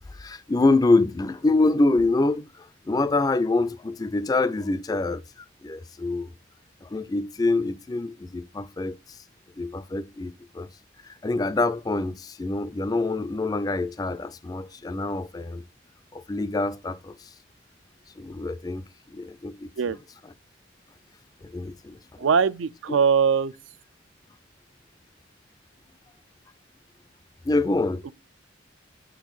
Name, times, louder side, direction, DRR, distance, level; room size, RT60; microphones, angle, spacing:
voice 1, 0.0-6.3 6.8-9.2 9.6-10.7 11.0-15.6 16.1-17.3 18.2-18.8 19.1-20.0 20.2-20.3 21.4-22.3 22.9-23.0 27.4-28.0, left 2 dB, 20° left, 0.3 m, -26 dB
voice 2, 22.2-23.5 28.1-28.2, right 6 dB, 80° right, 0.4 m, -21 dB
6.2 x 4.5 x 3.9 m
head